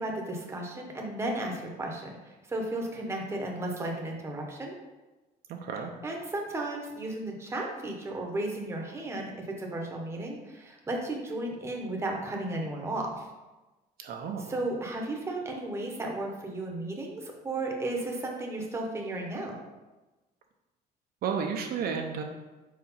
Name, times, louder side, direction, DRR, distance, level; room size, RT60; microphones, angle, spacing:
voice 1, 0.0-4.7 6.0-9.3 9.6-13.3 14.5-19.6, right 2 dB, 15° right, 0 dB, 1.0 m, -34 dB
voice 2, 5.5-5.9 14.0-14.5 21.2-22.2, right 6 dB, 60° right, 3 dB, 0.7 m, -32 dB
4.8 x 4.5 x 5.5 m, 1.1 s
cardioid pair, 155°, 17 cm